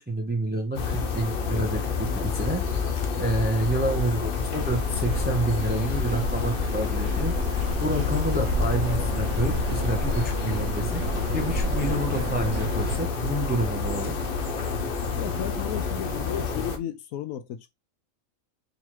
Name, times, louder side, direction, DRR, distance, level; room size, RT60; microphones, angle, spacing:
voice 1, 0.0-2.6 3.2-7.3 7.8-11.0 11.3-14.1, right 1 dB, 15° right, 0.3 m, -28 dB
sound 1, 0.7-16.8, left 5 dB, 50° left, 0.7 m, -28 dB
sound 2, 4.5-13.0, right 2 dB, 65° right, 1.0 m, -32 dB
voice 2, 15.2-17.7, left 10 dB, 90° left, 1.0 m, -34 dB
3.9 x 2.9 x 3.0 m
omnidirectional pair, 1.4 m